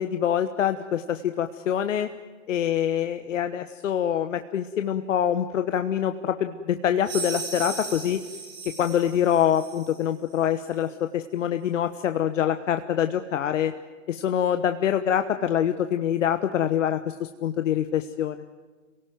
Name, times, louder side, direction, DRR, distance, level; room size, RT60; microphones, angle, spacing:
voice 1, 0.0-2.1 2.5-8.2 8.7-13.7 14.1-18.4, left 9 dB, 70° left, 9 dB, 1.2 m, -25 dB
sound 1, 7.0-10.0, right 4 dB, 75° right, 7.2 m, -36 dB
27.5 x 18.0 x 9.4 m, 1.4 s
hypercardioid pair, 130°, 39 cm